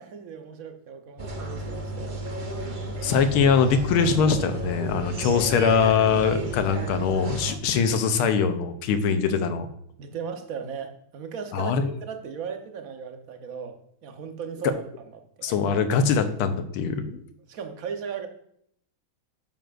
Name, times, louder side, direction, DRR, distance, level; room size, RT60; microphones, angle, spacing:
voice 1, 0.0-2.4 10.0-14.8 15.4-15.6 17.5-18.3, right 6 dB, 55° right, 6 dB, 1.1 m, -37 dB
sound 1, 1.2-7.5, right 1 dB, 70° right, 0.4 m, -32 dB
voice 2, 3.0-9.7 11.5-11.9 15.4-17.2, left 6 dB, 90° left, 8 dB, 1.7 m, -22 dB
9.1 x 7.1 x 2.5 m, 0.68 s
omnidirectional pair, 2.3 m